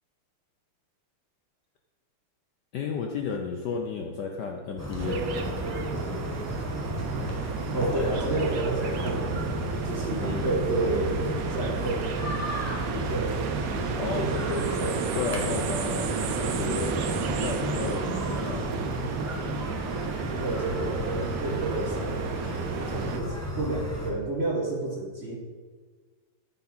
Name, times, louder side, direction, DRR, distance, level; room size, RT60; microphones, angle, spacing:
voice 1, 2.7-5.5 13.9-14.2 15.1-17.0 17.4-18.8, left 5 dB, 65° left, 2 dB, 1.1 m, -33 dB
sound 1, 4.8-24.1, equal, 10° left, 1.1 m, -33 dB
sound 2, 5.0-23.2, right 6 dB, 85° right, 0.7 m, -33 dB
voice 2, 7.7-9.6 9.8-12.0 12.9-13.5 14.2-15.3 20.4-25.4, right 2 dB, 35° right, -2 dB, 1.3 m, -30 dB
12.5 x 5.7 x 4.3 m, 1.5 s
omnidirectional pair, 2.4 m